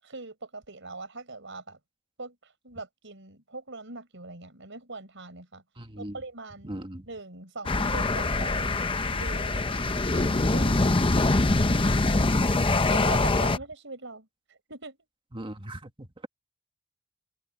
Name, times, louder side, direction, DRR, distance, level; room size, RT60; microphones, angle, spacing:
voice 1, 0.0-1.8 2.2-5.6 6.0-6.7 7.1-8.7 9.1-11.3 12.9-15.0, right 3 dB, 65° right, 6.6 m, -41 dB
voice 2, 5.8-6.2 6.6-7.1 12.3-13.2 13.4-13.5 15.3-16.3, right 1 dB, 25° right, 1.6 m, -40 dB
sound 1, 7.7-13.6, left 2 dB, 25° left, 0.8 m, -24 dB
open air
head